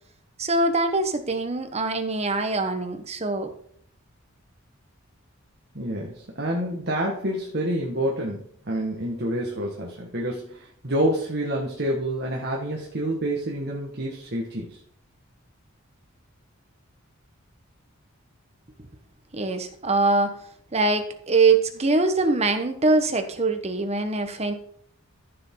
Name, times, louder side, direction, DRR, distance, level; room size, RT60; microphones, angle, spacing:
voice 1, 0.4-3.5 19.3-20.3 20.7-24.5, right 3 dB, 30° right, 8 dB, 1.2 m, -23 dB
voice 2, 5.7-14.8, right 1 dB, 50° right, -1 dB, 1.7 m, -28 dB
14.5 x 7.0 x 3.9 m, 0.64 s
head